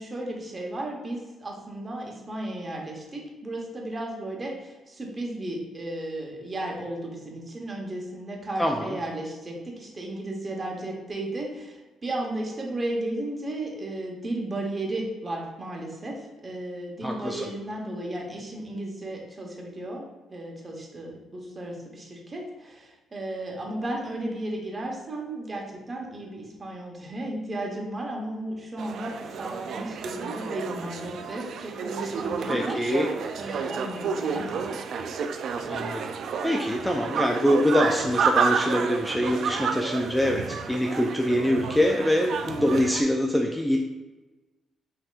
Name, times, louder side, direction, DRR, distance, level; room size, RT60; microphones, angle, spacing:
voice 1, 0.0-32.8 33.3-34.6, right 1 dB, 30° right, 0 dB, 1.0 m, -34 dB
voice 2, 8.6-9.0 17.0-17.5 32.5-33.1 35.7-36.1 36.4-43.8, left 1 dB, 5° left, 1 dB, 0.4 m, -24 dB
sound 1, 28.8-43.0, right 6 dB, 70° right, 0.3 m, -30 dB
5.4 x 2.8 x 2.4 m, 1.2 s
cardioid pair, 90°, 0 cm